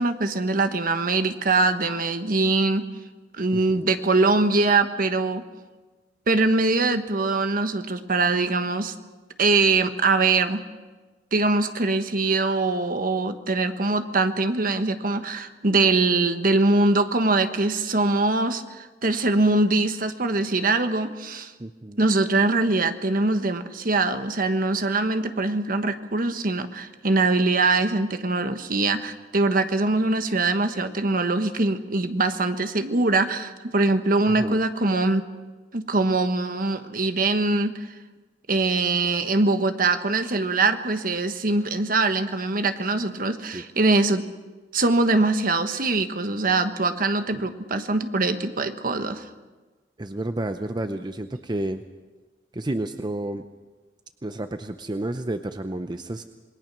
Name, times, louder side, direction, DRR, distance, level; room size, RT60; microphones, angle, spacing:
voice 1, 0.0-2.8 3.4-5.4 6.3-8.9 9.4-10.6 11.3-21.5 22.0-35.2 35.7-37.7 38.5-44.2 44.7-49.2, right 3 dB, 50° right, 9 dB, 1.3 m, -23 dB
voice 2, 3.5-3.9 21.6-22.0 34.4-34.6 43.5-43.6 47.3-47.4 50.0-51.8 52.5-53.5 54.2-56.2, right 1 dB, 25° right, 8 dB, 0.6 m, -31 dB
27.5 x 20.5 x 6.1 m, 1.3 s
head